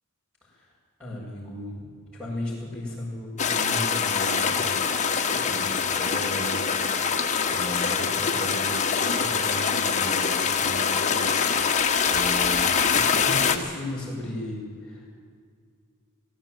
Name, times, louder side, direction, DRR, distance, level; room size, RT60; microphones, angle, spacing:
voice 1, 1.0-1.8 2.2-4.8 5.3-6.7 6.9-15.0, left 1 dB, 10° right, -9 dB, 6.7 m, -36 dB
sound 1, 3.4-13.6, left 6 dB, 35° left, 1.4 m, -24 dB
18.5 x 16.5 x 9.2 m, 2.1 s
head